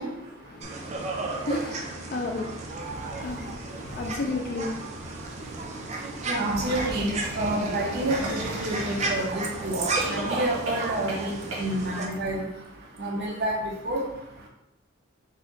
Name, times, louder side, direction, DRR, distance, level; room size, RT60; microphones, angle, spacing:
voice 1, 0.0-6.6, left 2 dB, 45° left, 0.4 m, -35 dB
sound 1, 0.6-12.1, right 3 dB, 35° right, 0.4 m, -34 dB
voice 2, 6.2-12.4 13.0-13.6 13.8-14.0, right 1 dB, 50° right, 0.8 m, -29 dB
sound 2, 6.6-9.5 9.9-11.2 11.5-11.7, right 2 dB, 90° right, 1.2 m, -35 dB
4.3 x 2.3 x 3.9 m
head